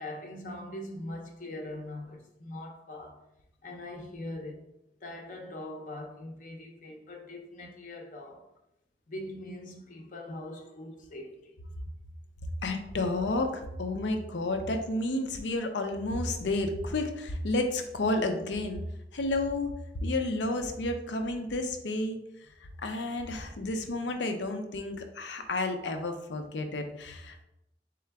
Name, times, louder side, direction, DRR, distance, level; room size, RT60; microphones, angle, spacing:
voice 1, 0.0-3.1 3.6-4.6 5.0-8.4 9.1-11.5, left 1 dB, 45° left, 0.6 m, -41 dB
voice 2, 12.6-18.8 19.1-19.7 20.0-22.2 22.8-27.4, left 2 dB, 90° left, 0.6 m, -31 dB
3.7 x 3.4 x 3.4 m
head